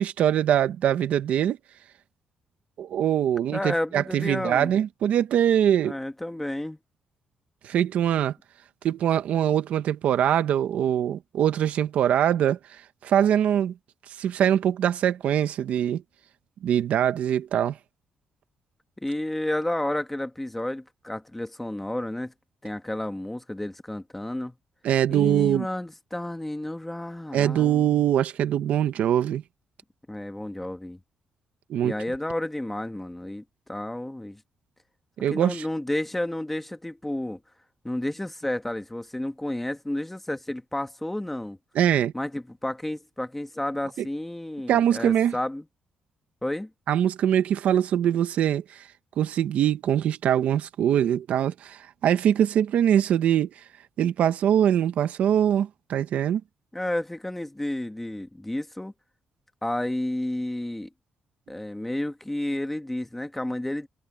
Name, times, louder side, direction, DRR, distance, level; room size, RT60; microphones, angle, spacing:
voice 1, 0.0-1.6 2.8-6.0 7.6-8.3 8.8-13.7 14.2-16.0 16.6-17.8 24.8-25.7 27.3-29.4 31.7-31.9 35.2-35.6 41.7-42.1 44.0-44.1 44.7-45.3 46.9-48.8 49.2-53.5 54.0-56.4, right 10 dB, 75° right, 1.2 m, -23 dB
voice 2, 3.5-4.7 5.8-6.8 19.0-22.3 22.6-24.6 25.1-28.0 30.1-31.0 31.8-34.4 35.3-37.4 37.8-41.6 42.1-45.6 46.4-46.7 56.7-58.9 59.6-60.9 61.5-63.9, left 1 dB, 5° left, 1.6 m, -31 dB
cardioid pair, 140°, 2 cm